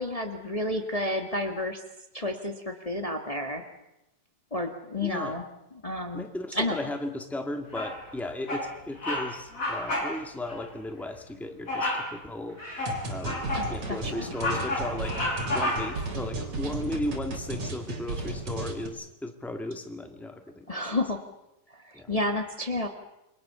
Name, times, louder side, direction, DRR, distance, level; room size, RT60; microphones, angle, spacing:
voice 1, 0.0-1.8 2.1-3.6 4.5-5.4 5.8-6.3 6.5-6.8 13.6-14.3 20.7-21.2 21.7-22.9, left 1 dB, 70° left, 4 dB, 0.3 m, -31 dB
voice 2, 5.0-5.4 6.1-12.6 13.1-15.2 15.5-20.8 21.9-22.1, left 1 dB, ahead, 5 dB, 0.7 m, -36 dB
Bird vocalization bird call bird song, 7.7-8.1 8.5-8.7 9.0-9.3 9.5-10.1 10.5-10.6 11.7-12.1 12.6-13.7 14.1-16.1, left 1 dB, 20° left, 5.9 m, -30 dB
sound 1, 12.9-18.9, right 2 dB, 50° right, 4.8 m, -34 dB
29.0 x 23.5 x 6.8 m, 0.91 s
omnidirectional pair, 3.9 m